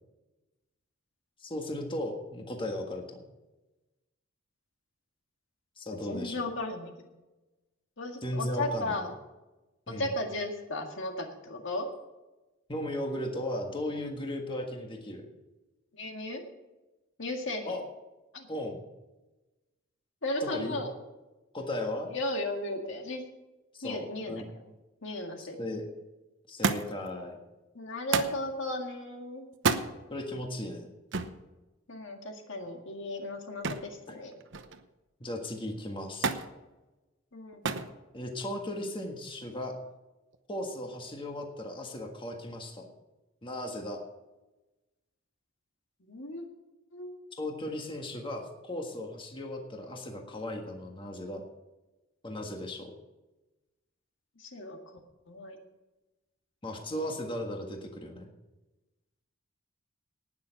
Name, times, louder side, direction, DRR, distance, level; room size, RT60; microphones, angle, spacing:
voice 1, 1.4-3.2 5.8-6.4 8.2-9.0 9.9-10.1 12.7-15.3 17.7-17.8 18.5-18.8 20.4-20.8 21.5-22.1 23.7-24.4 25.4-25.8 26.5-27.4 30.1-30.9 35.2-36.3 38.1-39.8 40.5-42.9 43.4-44.0 47.4-51.4 52.2-52.9 56.6-58.3, left 1 dB, 25° left, 2 dB, 1.6 m, -36 dB
voice 2, 5.9-6.9 8.0-9.1 10.0-11.9 15.9-16.4 17.2-17.8 18.3-18.5 20.2-20.9 22.1-23.2 23.8-24.4 25.0-25.8 27.7-29.5 31.9-34.4 37.3-37.8 46.0-46.4 46.9-47.2 54.4-55.0 55.3-55.6, left 2 dB, 65° left, 3 dB, 2.0 m, -35 dB
Thump thud, 26.6-27.1 28.1-28.4 29.5-29.9 31.1-31.4 33.6-34.0 34.3-34.9 36.2-36.5 37.6-37.9 38.9-39.3 40.3-40.4, right 4 dB, 65° right, 0.9 m, -30 dB
19.0 x 6.7 x 6.0 m, 1.1 s
head